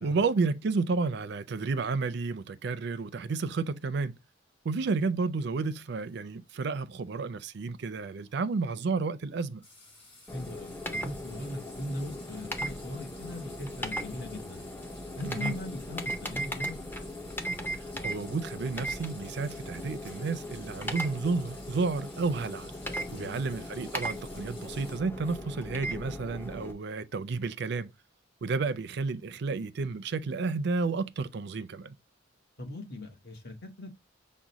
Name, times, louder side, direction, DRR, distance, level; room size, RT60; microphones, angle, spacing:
voice 1, 0.0-4.2 4.6-9.6 15.2-15.5 18.0-22.7 23.1-27.9 28.4-32.0, right 4 dB, 55° right, 0.4 m, -31 dB
sound 1, 9.6-25.0, left 2 dB, 30° left, 3.0 m, -53 dB
voice 2, 10.3-14.6 15.2-16.7 23.1-23.4 32.6-34.0, left 2 dB, 50° left, 1.1 m, -40 dB
sound 2, 10.3-26.7, equal, 10° left, 0.5 m, -38 dB
6.1 x 2.1 x 3.9 m
head